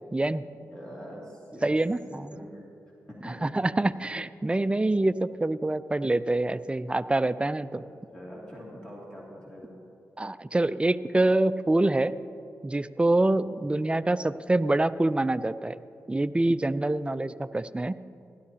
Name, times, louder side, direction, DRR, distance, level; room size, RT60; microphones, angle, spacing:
voice 1, 0.1-0.4 1.6-2.3 3.4-7.8 10.2-12.1 12.6-15.8 16.1-17.9, right 2 dB, 15° right, 14 dB, 0.4 m, -25 dB
voice 2, 0.7-1.8 2.1-2.6 3.1-3.5 7.7-7.9 8.1-9.9 13.2-13.5, equal, 15° left, -5 dB, 2.5 m, -44 dB
16.5 x 12.0 x 2.9 m, 2.7 s
cardioid pair, 50°, 7 cm